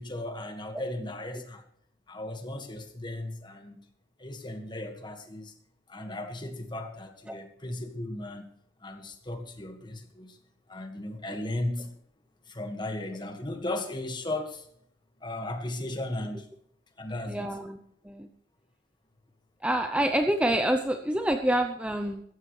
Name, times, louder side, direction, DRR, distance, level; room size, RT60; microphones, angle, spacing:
voice 1, 0.0-1.6 2.1-3.8 4.2-5.5 5.9-8.4 8.8-10.4 10.7-11.9 12.5-14.6 15.2-16.4 17.0-17.6, left 1 dB, 25° left, 6 dB, 1.7 m, -36 dB
voice 2, 17.3-17.8 18.0-18.3 19.6-22.2, right 1 dB, 5° right, 6 dB, 0.6 m, -27 dB
16.0 x 14.0 x 3.2 m, 0.67 s
head